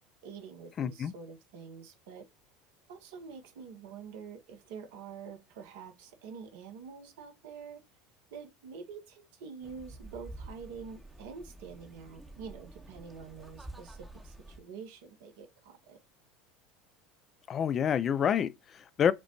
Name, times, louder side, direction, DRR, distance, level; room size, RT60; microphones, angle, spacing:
voice 1, 0.2-2.2 2.9-7.8 8.3-16.0, right 6 dB, 70° right, 0.8 m, -47 dB
voice 2, 0.8-1.1 17.5-19.1, left 8 dB, 40° left, 0.3 m, -28 dB
sound 1, 9.6-14.6, right 2 dB, 5° right, 0.7 m, -49 dB
5.1 x 2.1 x 2.8 m
hypercardioid pair, 75°, 0 cm